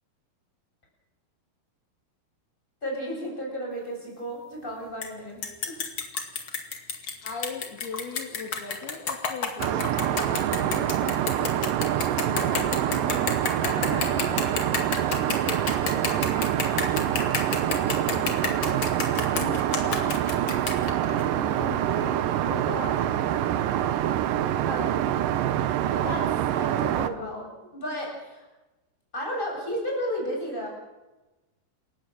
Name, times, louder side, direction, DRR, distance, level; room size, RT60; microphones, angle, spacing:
voice 1, 2.8-5.8 24.7-25.0 25.9-28.4 29.1-30.7, equal, 10° left, -1 dB, 7.7 m, -33 dB
sound 1, 5.0-5.1 5.4-21.3, left 5 dB, 40° left, 2.3 m, -31 dB
voice 2, 7.2-11.1 11.4-14.7 15.1-16.9 17.2-18.9 19.3-20.1 20.8-23.4, left 5 dB, 75° left, 2 dB, 4.4 m, -40 dB
Aircraft, 9.6-27.1, right 11 dB, 70° right, 2.3 m, -26 dB
28.0 x 15.5 x 7.6 m, 1.1 s
omnidirectional pair, 4.5 m